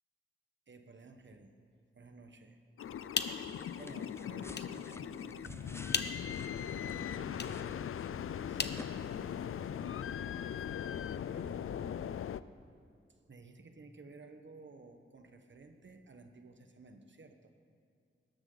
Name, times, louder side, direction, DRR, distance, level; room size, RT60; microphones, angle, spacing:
voice 1, 0.7-1.5 1.9-2.6 3.8-5.9 6.4-7.7 8.4-10.0 10.6-10.9 11.3-12.4 13.1-17.5, right 3 dB, 60° right, 6 dB, 1.3 m, -55 dB
sound 1, 2.8-12.4, left 9 dB, 85° left, 0.4 m, -40 dB
sound 2, 2.8-9.7, left 5 dB, 55° left, 0.8 m, -42 dB
sound 3, 3.4-8.4 8.7-8.9, left 1 dB, 10° left, 0.6 m, -53 dB
17.5 x 13.5 x 4.0 m, 2.3 s
cardioid pair, 60°, 21 cm